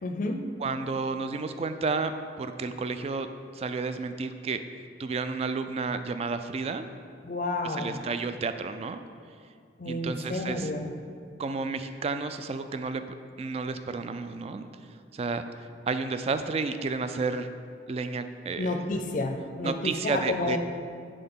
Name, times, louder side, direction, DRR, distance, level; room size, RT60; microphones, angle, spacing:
voice 1, 0.0-0.4 7.2-8.0 9.8-10.9 18.6-20.6, left 2 dB, 45° left, 5 dB, 0.5 m, -30 dB
voice 2, 0.6-2.1 2.4-3.3 3.5-4.6 5.0-6.8 7.8-9.0 9.9-10.7 11.4-14.7 15.1-15.4 15.9-17.5 17.9-18.8 19.6-20.6, right 4 dB, 35° right, 9 dB, 0.3 m, -31 dB
7.8 x 3.6 x 5.5 m, 2.2 s
head